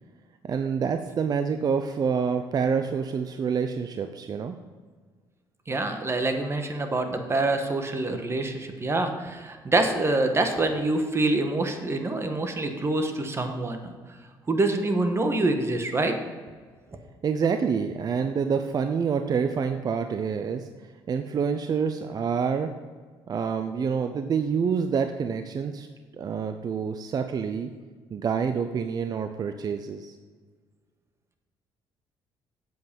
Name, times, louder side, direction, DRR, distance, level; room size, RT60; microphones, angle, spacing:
voice 1, 0.4-4.6 17.2-20.7 21.1-22.7 23.3-25.9 26.2-27.7 28.1-30.1, right 6 dB, 45° right, 7 dB, 0.6 m, -27 dB
voice 2, 5.7-13.9 14.5-16.1, right 2 dB, 30° right, 6 dB, 1.4 m, -26 dB
8.1 x 7.8 x 5.3 m, 1.5 s
cardioid pair, 85°, 10 cm